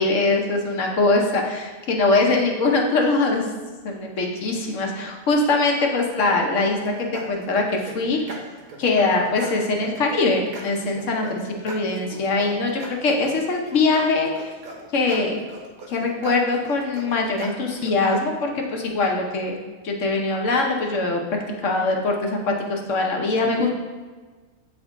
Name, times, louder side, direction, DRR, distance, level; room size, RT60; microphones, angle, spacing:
voice 1, 0.0-3.5 3.8-8.4 8.8-14.5 14.9-15.4 15.9-19.6 19.8-21.2 21.6-23.7, left 3 dB, 65° left, 1 dB, 1.1 m, -22 dB
sound 1, 6.7-18.2, right 3 dB, 85° right, 1.4 m, -39 dB
8.1 x 3.6 x 3.6 m, 1.4 s
omnidirectional pair, 1.4 m